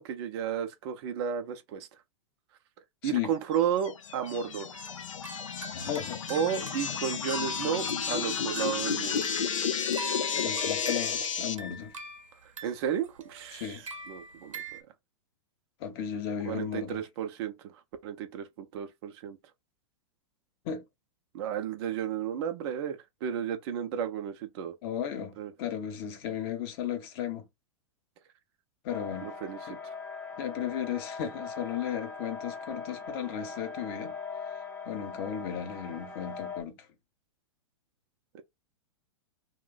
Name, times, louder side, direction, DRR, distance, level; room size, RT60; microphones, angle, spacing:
voice 1, 0.0-1.9 3.0-4.8 6.3-9.2 12.4-14.8 16.4-17.7 18.0-19.4 21.3-24.7 25.4-25.5 29.2-29.6 29.8-30.0 38.3-38.4, right 8 dB, 50° right, 0.5 m, -33 dB
sound 1, 3.8-11.5, left 7 dB, 85° left, 0.5 m, -32 dB
sound 2, 4.7-14.8, right 3 dB, 90° right, 0.8 m, -44 dB
voice 2, 5.7-6.2 10.4-11.9 13.5-13.9 15.8-17.0 20.6-20.8 24.8-27.4 28.8-29.3 29.7-29.8 30.4-34.1 34.9-36.8, left 9 dB, 50° left, 0.8 m, -35 dB
sound 3, 28.9-36.6, left 5 dB, 10° left, 0.5 m, -41 dB
2.5 x 2.2 x 3.8 m
hypercardioid pair, 110°, 16 cm